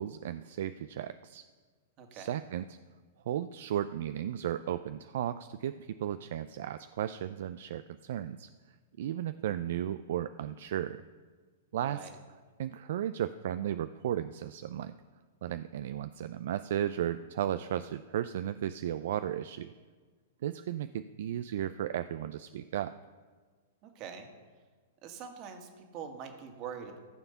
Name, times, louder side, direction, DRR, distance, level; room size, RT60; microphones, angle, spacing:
voice 1, 0.0-1.4 2.1-2.6 3.3-8.5 9.0-11.0 11.7-12.1 12.6-14.9 15.4-19.7 20.4-23.0, right 11 dB, 65° right, 12 dB, 0.4 m, -35 dB
voice 2, 2.0-2.4 11.8-12.1 23.8-24.3 25.0-27.0, right 7 dB, 40° right, 5 dB, 1.9 m, -44 dB
14.5 x 7.1 x 5.7 m, 1.5 s
hypercardioid pair, 115°, 0 cm